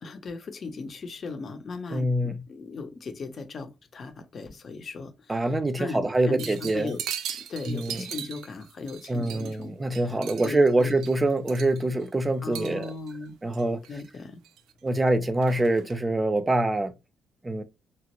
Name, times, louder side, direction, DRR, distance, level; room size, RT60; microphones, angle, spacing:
voice 1, 0.0-7.0 7.3-10.9 12.4-13.4 13.9-14.4, left 4 dB, 50° left, 0.7 m, -38 dB
voice 2, 1.9-2.4 5.3-6.9 7.7-8.0 9.1-12.9 13.4-13.8 14.8-16.9 17.4-17.6, right 2 dB, 20° right, 0.5 m, -25 dB
sound 1, 6.4-9.6 9.9-12.0 12.5-13.1 13.5-14.1 14.4-15.0 15.4-16.0, right 9 dB, 85° right, 0.4 m, -39 dB
2.9 x 2.4 x 3.0 m
cardioid pair, 90°, 0 cm